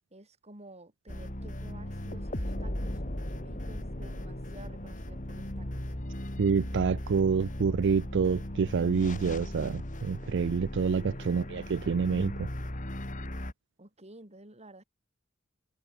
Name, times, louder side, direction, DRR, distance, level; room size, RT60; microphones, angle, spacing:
voice 1, 0.1-5.9 10.2-10.5 10.9-11.7 13.8-14.8, right 2 dB, 30° right, 6.6 m, -53 dB
sound 1, 1.1-13.5, left 1 dB, 40° left, 3.6 m, -37 dB
voice 2, 6.4-12.5, right 5 dB, 60° right, 0.4 m, -27 dB
head